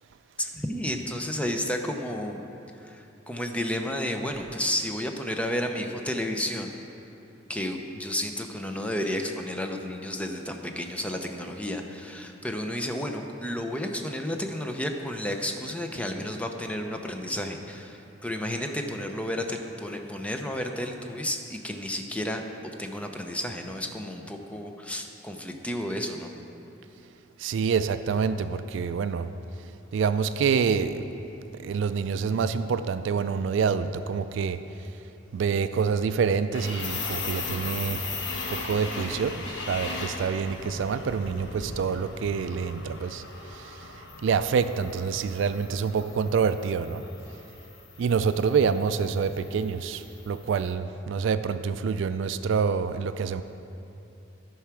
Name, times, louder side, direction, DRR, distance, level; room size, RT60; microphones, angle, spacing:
voice 1, 0.4-2.5 2.8-6.8 7.5-22.4 22.8-26.3, left 1 dB, 5° left, 4 dB, 0.6 m, -32 dB
voice 2, 27.4-29.3 29.9-31.0 31.6-34.6 35.3-38.2 38.5-43.2 44.2-47.0 48.0-53.4, right 6 dB, 65° right, 12 dB, 0.3 m, -27 dB
sound 1, 36.5-50.6, left 3 dB, 65° left, 1.0 m, -38 dB
13.5 x 4.7 x 6.0 m, 2.9 s
head